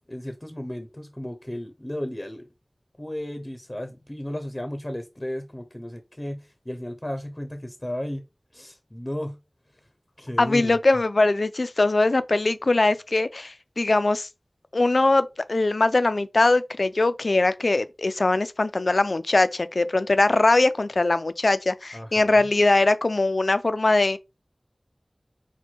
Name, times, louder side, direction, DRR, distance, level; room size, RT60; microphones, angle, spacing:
voice 1, 0.1-2.4 3.0-8.2 8.5-9.4 10.2-10.8 21.9-22.5, left 1 dB, 25° left, 0.6 m, -34 dB
voice 2, 10.4-14.3 14.7-24.2, left 2 dB, 85° left, 0.3 m, -21 dB
4.3 x 2.1 x 4.4 m
wide cardioid pair, 45°, 0 cm